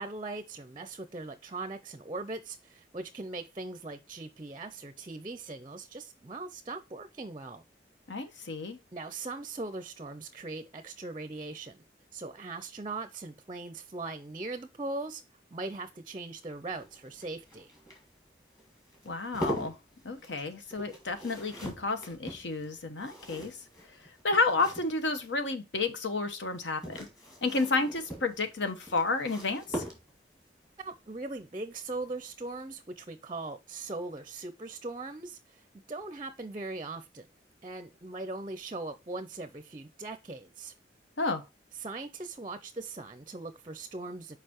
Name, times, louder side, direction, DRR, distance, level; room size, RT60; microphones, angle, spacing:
voice 1, 0.0-7.6 8.1-8.2 8.9-11.8 12.1-15.2 15.5-17.7 30.8-37.3 37.6-40.7 41.8-44.4, right 3 dB, 25° right, 0.5 m, -40 dB
voice 2, 8.1-8.8 19.0-19.8 20.0-23.6 24.2-27.0 27.4-29.8 41.2-41.4, left 3 dB, 85° left, 1.1 m, -31 dB
sound 1, 16.5-25.4 26.5-30.4 32.0-32.3 32.6-32.7, right 1 dB, 20° left, 2.0 m, -43 dB
6.6 x 4.9 x 3.0 m
head